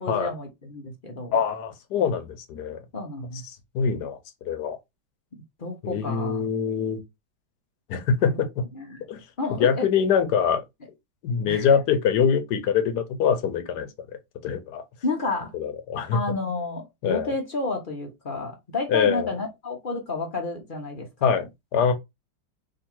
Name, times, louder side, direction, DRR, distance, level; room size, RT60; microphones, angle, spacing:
voice 1, 0.0-1.4 2.9-3.4 5.6-6.5 8.2-8.4 8.7-9.0 9.4-9.9 11.5-11.7 15.0-15.5 16.1-21.4, left 2 dB, 40° left, 0.8 m, -31 dB
voice 2, 1.3-2.8 3.5-4.2 4.4-4.8 5.8-7.0 7.9-8.7 9.1-9.2 9.5-10.6 11.2-13.9 14.4-14.8 15.5-16.2 17.0-17.3 18.9-19.3 21.2-21.9, left 7 dB, 70° left, 1.3 m, -24 dB
3.7 x 2.9 x 4.4 m
omnidirectional pair, 1.9 m